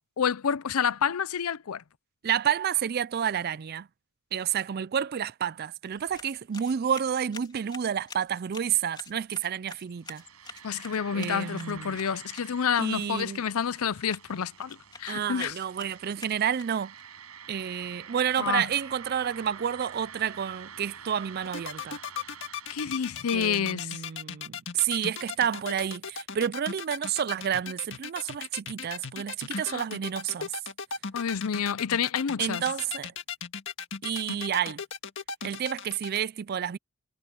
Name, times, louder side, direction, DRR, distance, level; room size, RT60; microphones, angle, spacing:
voice 1, 0.2-1.8 10.6-15.5 18.4-18.7 22.7-24.0 29.5-29.8 31.1-32.6, left 7 dB, 80° left, 0.6 m, -29 dB
voice 2, 2.2-3.9 4.3-10.2 11.1-12.0 12.8-13.4 15.1-16.9 17.5-22.0 23.3-30.5 32.4-33.1 34.0-34.8 35.4-36.8, right 8 dB, 45° right, 0.4 m, -30 dB
sound 1, 5.8-17.0, left 4 dB, 20° left, 3.1 m, -49 dB
sound 2, 10.0-23.9, right 7 dB, 85° right, 7.2 m, -48 dB
sound 3, 21.4-36.2, left 6 dB, 60° left, 1.8 m, -37 dB
head